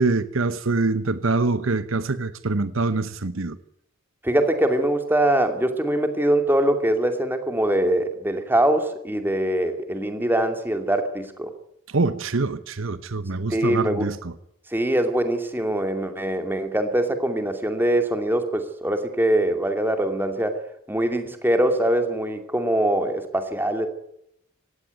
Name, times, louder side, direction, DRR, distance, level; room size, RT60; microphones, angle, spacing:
voice 1, 0.0-3.6 11.9-14.3, right 3 dB, 65° right, 0.9 m, -24 dB
voice 2, 4.2-11.5 13.5-14.1 14.7-20.6 20.9-23.9, right 1 dB, 10° right, 2.4 m, -23 dB
18.0 x 16.0 x 9.4 m
head